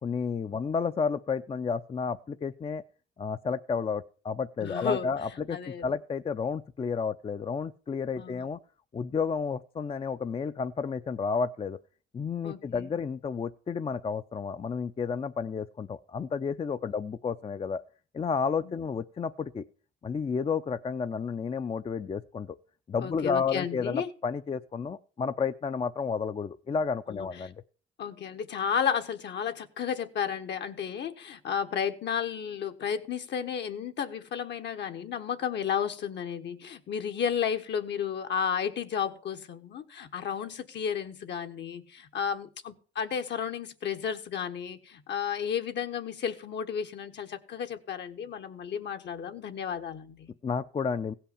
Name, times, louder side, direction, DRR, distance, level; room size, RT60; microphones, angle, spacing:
voice 1, 0.0-2.8 3.2-8.6 8.9-11.8 12.1-17.8 18.1-19.6 20.0-22.6 22.9-27.5 50.4-51.1, left 5 dB, 30° left, 0.5 m, -31 dB
voice 2, 4.6-5.1 5.5-5.8 8.2-8.4 12.4-12.9 18.6-18.7 23.0-24.1 27.1-27.3 28.0-50.3, left 7 dB, 65° left, 1.2 m, -33 dB
16.0 x 5.8 x 6.9 m
cardioid pair, 90°, 20 cm